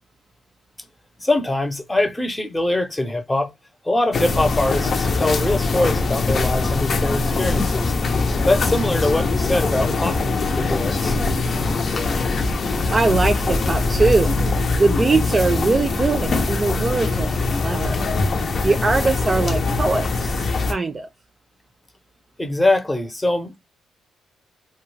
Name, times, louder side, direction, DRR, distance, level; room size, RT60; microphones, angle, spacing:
voice 1, 1.2-3.5 3.8-7.9 8.4-11.2 22.4-23.6, left 2 dB, 15° left, 0.8 m, -23 dB
sound 1, 4.1-20.7, left 3 dB, 50° left, 0.7 m, -22 dB
voice 2, 12.9-14.3 14.8-18.0 18.6-21.1, right 3 dB, 30° right, 0.5 m, -21 dB
2.3 x 2.2 x 3.2 m
supercardioid pair, 65°, 0 cm